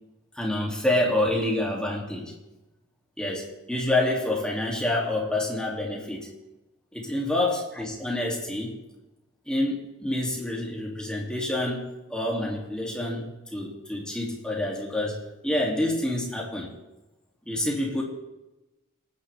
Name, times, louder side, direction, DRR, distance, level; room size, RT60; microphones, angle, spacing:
voice 1, 0.4-2.3 3.2-6.3 6.9-8.7 9.5-16.7 17.4-18.0, left 1 dB, 5° left, -2 dB, 2.8 m, -27 dB
28.0 x 10.0 x 3.6 m, 1.0 s
head